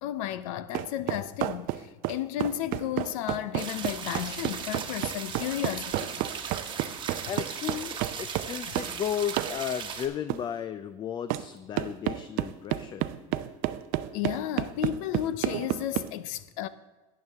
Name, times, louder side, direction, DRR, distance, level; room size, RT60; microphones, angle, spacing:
voice 1, 0.0-6.2 14.1-16.7, left 12 dB, 75° left, 0.7 m, -33 dB
sound 1, 0.7-9.0 9.4-9.6 10.3-10.4 11.3-11.5 11.8-16.1, right 15 dB, 55° right, 0.5 m, -30 dB
sound 2, 3.6-10.1, right 6 dB, 30° right, 1.3 m, -37 dB
voice 2, 7.3-13.1, left 9 dB, 25° left, 0.4 m, -34 dB
12.0 x 9.0 x 3.5 m
supercardioid pair, 125°, 17 cm